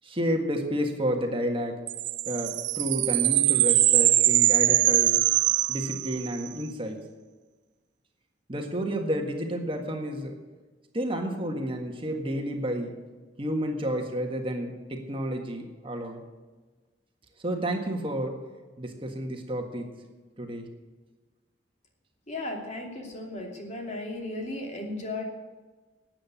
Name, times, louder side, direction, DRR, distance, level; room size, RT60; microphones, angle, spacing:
voice 1, 0.0-1.8 2.2-5.2 5.7-7.1 8.5-10.4 10.9-13.0 13.4-16.2 17.4-18.4 18.8-19.9 20.4-20.7, equal, 30° right, 3 dB, 1.7 m, -30 dB
sound 1, 1.9-6.5, right 15 dB, 80° right, 0.5 m, -22 dB
voice 2, 22.3-25.2, left 2 dB, 40° left, 1 dB, 2.8 m, -35 dB
13.0 x 8.9 x 8.6 m, 1.3 s
head